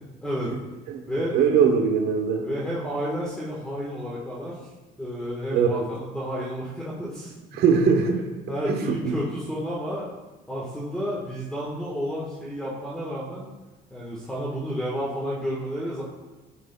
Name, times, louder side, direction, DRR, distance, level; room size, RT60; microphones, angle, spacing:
voice 1, 0.2-0.5 1.1-1.4 2.4-4.7 5.0-7.6 8.5-10.1 10.5-13.5 13.9-16.0, equal, 5° left, -5 dB, 1.3 m, -31 dB
voice 2, 1.3-2.4 5.5-5.8 7.5-8.2 8.7-9.2, right 6 dB, 75° right, 3 dB, 1.1 m, -21 dB
9.3 x 6.3 x 2.2 m, 1.2 s
cardioid pair, 110°, 17 cm